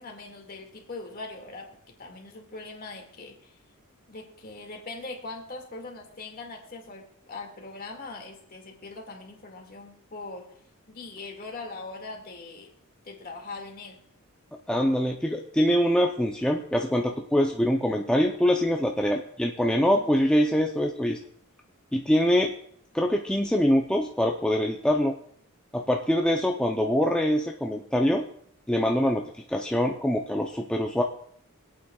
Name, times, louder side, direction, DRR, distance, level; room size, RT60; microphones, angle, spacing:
voice 1, 0.0-3.6 4.1-10.6 10.9-12.7 13.0-14.0, left 3 dB, 40° left, 1 dB, 2.0 m, -41 dB
voice 2, 14.7-21.2 21.9-22.5 22.9-25.1 25.7-28.2 28.7-29.2 29.5-31.0, equal, 5° left, 0 dB, 0.5 m, -24 dB
25.5 x 8.7 x 2.3 m, 0.66 s
head